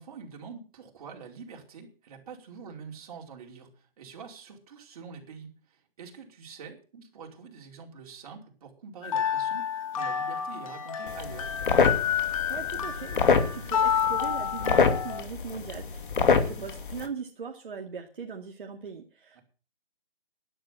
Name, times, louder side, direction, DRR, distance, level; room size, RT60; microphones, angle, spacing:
voice 1, 0.0-11.5 16.3-16.6 19.3-19.4, right 5 dB, 40° right, 1 dB, 5.0 m, -46 dB
sound 1, 9.0-15.2, left 8 dB, 35° left, 1.7 m, -29 dB
sound 2, 11.1-17.1, left 5 dB, 60° left, 2.6 m, -26 dB
voice 2, 12.5-19.4, right 5 dB, 60° right, 2 dB, 2.3 m, -40 dB
13.5 x 11.5 x 6.1 m, 0.38 s
hypercardioid pair, 155°, 29 cm